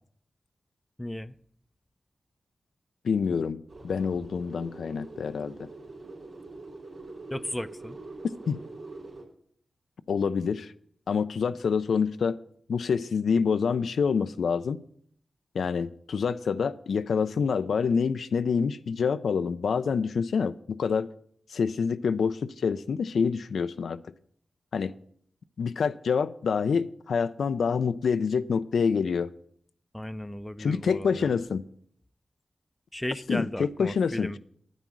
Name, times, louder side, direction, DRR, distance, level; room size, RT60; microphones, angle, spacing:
voice 1, 1.0-1.3 7.3-8.0 29.9-31.3 32.9-34.4, left 1 dB, 15° left, 0.5 m, -35 dB
voice 2, 3.0-5.7 8.5-8.6 10.1-10.7 11.1-12.4 12.7-14.8 15.5-21.1 21.5-24.0 24.7-24.9 25.6-29.3 30.6-31.6 33.3-34.4, left 6 dB, 85° left, 0.4 m, -27 dB
sound 1, 3.7-9.3, right 3 dB, 70° right, 3.3 m, -44 dB
9.3 x 8.9 x 6.1 m
cardioid pair, 45°, 0 cm